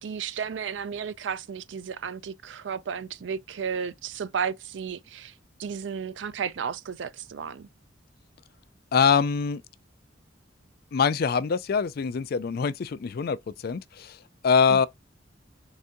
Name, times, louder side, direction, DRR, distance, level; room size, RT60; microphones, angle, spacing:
voice 1, 0.0-5.3 5.6-7.7 14.7-14.9, right 7 dB, 80° right, 0.4 m, -33 dB
voice 2, 8.9-9.6 10.9-13.4 13.6-14.2 14.4-14.9, left 6 dB, 55° left, 0.4 m, -23 dB
4.0 x 2.6 x 3.6 m
head